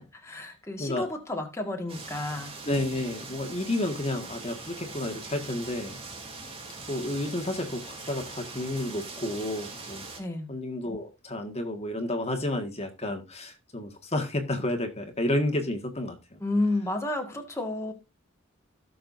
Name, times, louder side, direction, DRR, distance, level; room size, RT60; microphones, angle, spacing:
voice 1, 0.0-2.6 10.2-10.5 16.4-17.9, left 2 dB, 15° left, 1.8 m, -31 dB
sound 1, 1.9-10.2, right 3 dB, 30° right, 3.1 m, -42 dB
voice 2, 2.7-6.0 6.9-10.1 10.5-16.4, left 1 dB, 30° left, 1.7 m, -31 dB
17.5 x 6.9 x 2.6 m
head